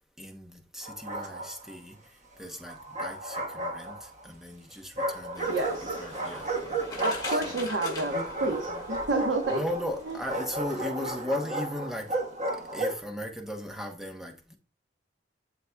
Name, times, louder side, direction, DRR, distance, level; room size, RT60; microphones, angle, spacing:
voice 1, 0.2-7.7 8.4-8.8 9.5-12.2 12.5-14.5, left 1 dB, ahead, 0.9 m, -38 dB
Bark, 0.8-1.7 2.6-4.2 5.0-13.1, right 2 dB, 40° right, 1.3 m, -33 dB
sound 1, 5.3-10.4, left 3 dB, 20° left, 2.2 m, -42 dB
voice 2, 5.5-6.0 7.0-9.6, right 2 dB, 70° right, 1.0 m, -30 dB
12.5 x 4.1 x 2.3 m
head